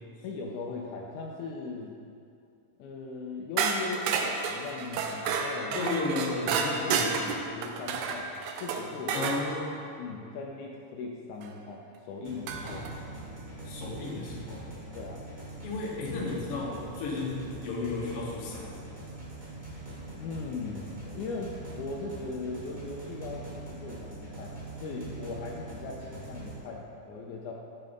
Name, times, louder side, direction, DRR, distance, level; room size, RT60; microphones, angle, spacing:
voice 1, 0.2-2.0 2.8-5.9 6.8-8.3 8.6-9.3 10.0-12.8 14.9-15.2 20.2-27.5, left 3 dB, 85° left, -1 dB, 2.1 m, -39 dB
sound 1, 3.6-9.4 11.4-11.5 12.5-12.9, right 5 dB, 80° right, 1.9 m, -30 dB
voice 2, 5.7-7.2 9.1-9.8 12.6-13.0 13.6-14.7 15.6-18.9, left 3 dB, 55° left, -3 dB, 1.9 m, -34 dB
sound 2, 12.2-26.6, right 2 dB, 25° right, 0.9 m, -43 dB
6.6 x 6.3 x 5.1 m, 2.4 s
omnidirectional pair, 3.7 m